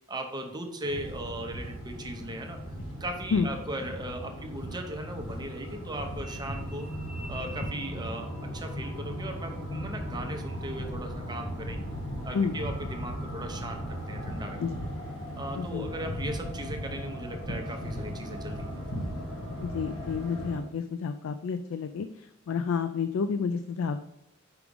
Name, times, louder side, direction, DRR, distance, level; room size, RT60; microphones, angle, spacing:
voice 1, 0.1-2.6 3.0-6.9 7.3-11.8 12.2-14.6 15.3-18.8, right 1 dB, 20° right, 4 dB, 0.7 m, -38 dB
sound 1, 0.8-20.6, equal, 90° left, 1.4 m, -37 dB
voice 2, 14.6-14.9 15.6-16.1 19.6-24.0, left 5 dB, 65° left, 9 dB, 0.3 m, -30 dB
4.9 x 4.9 x 5.2 m, 0.84 s
head